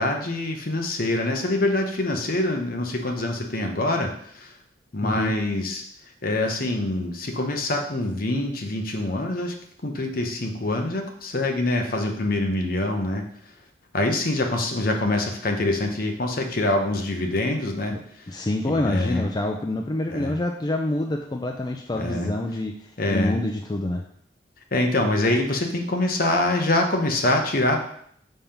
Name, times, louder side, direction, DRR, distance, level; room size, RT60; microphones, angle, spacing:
voice 1, 0.0-4.5 4.9-5.8 6.2-9.5 9.8-13.2 13.9-17.9 18.6-19.2 20.1-20.3 21.9-22.3 23.0-23.4 24.7-27.8, left 2 dB, 55° left, 3 dB, 0.9 m, -25 dB
voice 2, 5.0-5.3 17.9-18.0 18.3-24.0, left 1 dB, 25° left, 2 dB, 0.4 m, -27 dB
5.4 x 3.5 x 5.7 m, 0.66 s
head